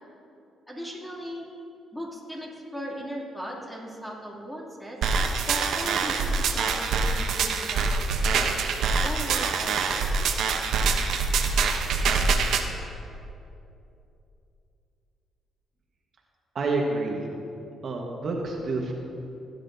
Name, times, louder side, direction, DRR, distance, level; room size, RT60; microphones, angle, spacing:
voice 1, 0.7-1.4 1.9-5.0 5.5-7.9 8.2-8.6 9.0-9.8 10.2-10.4, equal, 10° left, -4 dB, 2.7 m, -37 dB
sound 1, 5.0-12.6, right 4 dB, 75° right, 0.9 m, -25 dB
voice 2, 16.5-17.3 17.8-18.9, right 3 dB, 50° right, -1 dB, 1.4 m, -28 dB
18.0 x 9.8 x 2.7 m, 2.8 s
cardioid pair, 90°, 0 cm